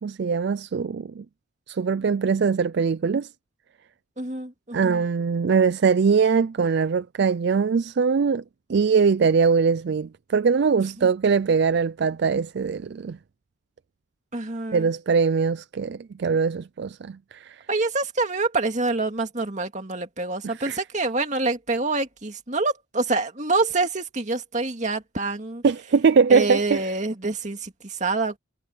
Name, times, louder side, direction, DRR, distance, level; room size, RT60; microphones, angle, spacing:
voice 1, 0.0-1.2 1.7-3.3 4.7-8.4 8.7-13.2 14.7-17.6 20.4-20.8 25.6-26.9, right 5 dB, 55° right, 0.4 m, -22 dB
voice 2, 4.2-5.0 11.0-11.1 14.3-14.9 17.7-25.6 26.3-28.4, right 3 dB, 35° right, 2.2 m, -26 dB
head